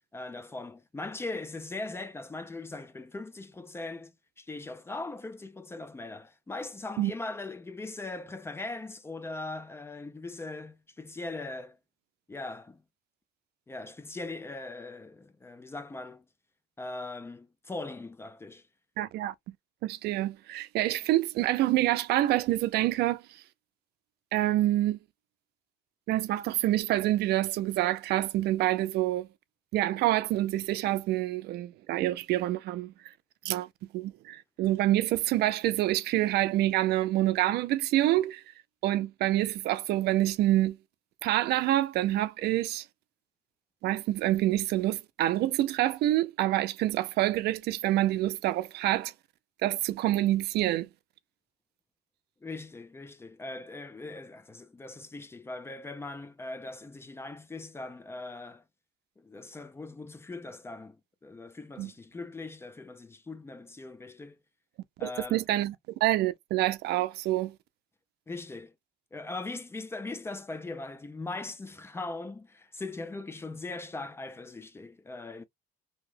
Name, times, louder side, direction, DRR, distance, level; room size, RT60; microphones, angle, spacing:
voice 1, 0.1-4.1 4.4-11.8 12.3-12.8 13.7-16.2 16.8-18.6 52.4-58.6 59.2-61.0 61.2-64.4 65.0-65.4 68.3-68.7 69.1-75.4, left 2 dB, 15° left, 0.4 m, -40 dB
voice 2, 19.0-19.3 19.8-23.2 24.3-25.0 26.1-29.3 29.7-32.9 33.4-33.7 33.9-38.4 38.8-40.8 41.2-42.9 43.8-49.1 49.6-50.9 61.8-61.9 65.0-65.7 66.0-67.5, right 15 dB, 75° right, 0.4 m, -27 dB
2.7 x 2.1 x 3.2 m
cardioid pair, 110°, 17 cm